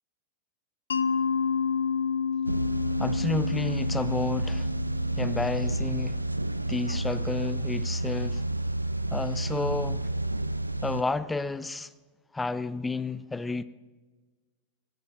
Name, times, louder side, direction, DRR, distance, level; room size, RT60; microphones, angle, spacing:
Mallet percussion, 0.9-5.7, left 6 dB, 70° left, 0.8 m, -30 dB
sound 1, 2.4-11.0, right 1 dB, 85° right, 0.6 m, -30 dB
voice 1, 3.0-4.7 5.2-6.2 6.7-8.4 9.1-10.1 10.8-11.9 12.3-13.6, left 3 dB, 10° left, 0.6 m, -31 dB
18.5 x 12.0 x 5.8 m
figure-of-eight pair, 90°, 0 cm